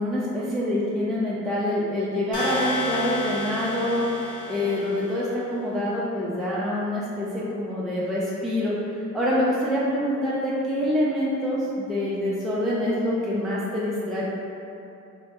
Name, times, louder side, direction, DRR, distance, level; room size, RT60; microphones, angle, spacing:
voice 1, 0.0-8.7 9.1-14.3, left 1 dB, ahead, -8 dB, 0.4 m, -26 dB
sound 1, 2.3-5.2, left 2 dB, 85° left, 1.0 m, -31 dB
3.3 x 2.0 x 2.8 m, 2.7 s
cardioid pair, 90°, 30 cm